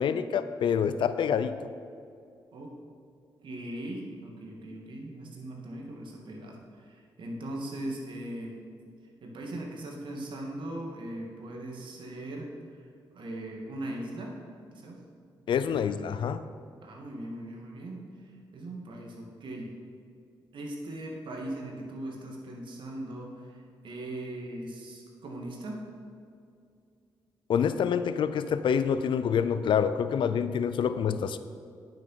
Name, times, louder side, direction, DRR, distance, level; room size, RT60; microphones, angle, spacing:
voice 1, 0.0-1.6 15.5-16.4 27.5-31.4, left 7 dB, 70° left, 12 dB, 0.5 m, -27 dB
voice 2, 3.4-8.6 9.2-12.9 13.1-14.4 14.7-15.0 16.8-19.7 20.5-25.9, right 1 dB, 70° right, 0 dB, 2.3 m, -39 dB
9.2 x 7.7 x 5.8 m, 2.4 s
supercardioid pair, 55°, 9 cm